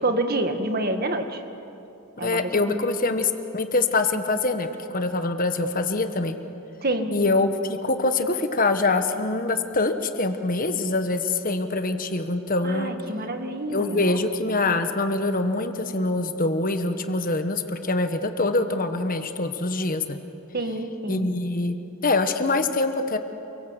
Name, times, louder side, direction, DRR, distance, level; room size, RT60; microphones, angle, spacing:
voice 1, 0.0-1.4 2.2-2.8 6.8-7.1 12.6-14.2 20.5-21.3, right 2 dB, 45° right, 7 dB, 1.7 m, -28 dB
voice 2, 2.2-6.3 7.1-12.9 13.7-20.2 21.1-23.2, left 3 dB, 40° left, 8 dB, 1.4 m, -24 dB
28.5 x 23.5 x 8.2 m, 2.9 s
head